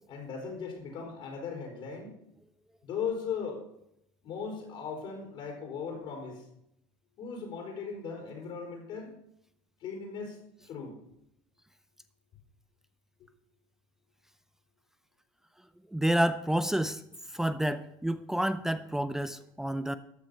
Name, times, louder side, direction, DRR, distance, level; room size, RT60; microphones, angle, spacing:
voice 1, 0.1-2.1 2.8-3.6 4.2-6.4 7.2-9.1 9.8-10.4 10.7-11.0, left 6 dB, 55° left, 1 dB, 4.2 m, -38 dB
voice 2, 15.9-17.0 17.3-20.0, right 1 dB, 5° right, 12 dB, 0.6 m, -29 dB
13.5 x 7.4 x 5.5 m, 0.77 s
supercardioid pair, 110°, 10 cm